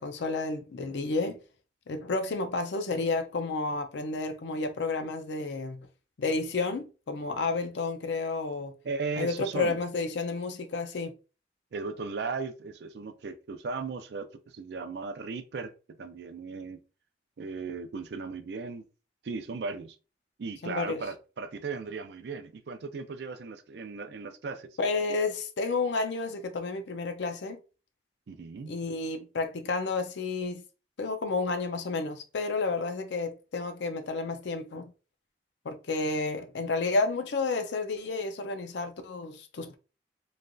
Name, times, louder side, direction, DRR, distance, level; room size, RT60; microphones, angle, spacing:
voice 1, 0.0-1.4 1.9-5.9 6.2-8.7 9.2-11.1 20.6-21.0 24.8-27.6 28.7-30.6 31.0-34.9 35.6-39.8, left 3 dB, 75° left, 0.5 m, -31 dB
voice 2, 8.8-9.8 11.7-14.3 14.5-16.8 17.4-18.8 19.2-20.0 20.4-24.7 28.3-28.8, right 4 dB, 65° right, 0.4 m, -37 dB
3.1 x 2.5 x 2.3 m
head